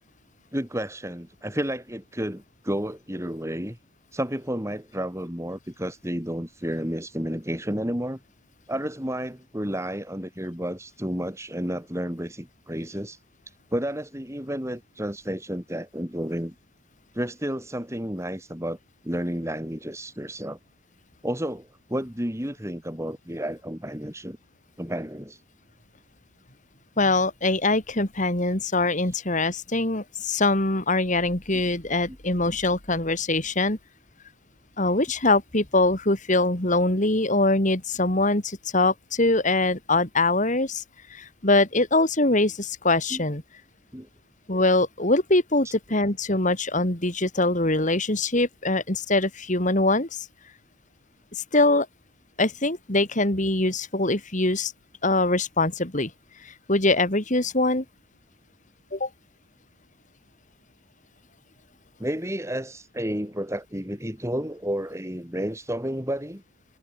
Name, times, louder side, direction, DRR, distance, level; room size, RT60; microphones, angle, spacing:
voice 1, 0.5-3.8 4.1-8.2 8.7-13.2 13.7-16.5 17.1-18.8 19.0-20.6 21.2-24.4 24.8-25.4 43.1-43.2 43.9-44.1 45.6-45.7 62.0-66.4, equal, 15° right, 3.9 m, -31 dB
voice 2, 27.0-33.8 34.8-40.8 41.1-43.4 44.5-50.3 51.3-51.9 52.4-54.7 55.0-56.1 56.7-57.8 58.9-59.1, left 2 dB, 35° left, 2.8 m, -23 dB
head